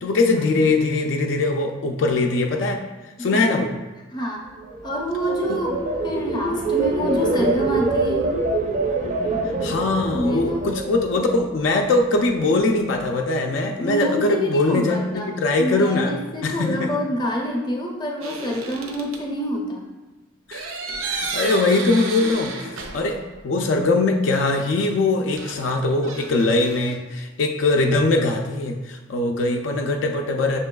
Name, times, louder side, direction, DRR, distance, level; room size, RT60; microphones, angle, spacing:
voice 1, 0.0-2.8 3.2-3.7 5.5-5.6 9.6-16.2 16.4-16.9 20.5-20.7 21.0-23.2 23.4-30.6, left 2 dB, 70° left, 2 dB, 0.4 m, -21 dB
voice 2, 4.1-4.5 4.8-8.3 10.1-10.7 13.8-15.3 15.6-19.9, equal, 20° left, -1 dB, 0.5 m, -27 dB
sound 1, 4.6-11.8 12.2-12.6, right 2 dB, 35° right, 0.4 m, -25 dB
sound 2, 18.2-19.2 20.5-23.4 23.6-23.7 25.4-27.0, right 4 dB, 90° right, 0.6 m, -32 dB
6.3 x 2.9 x 2.3 m, 1.1 s
head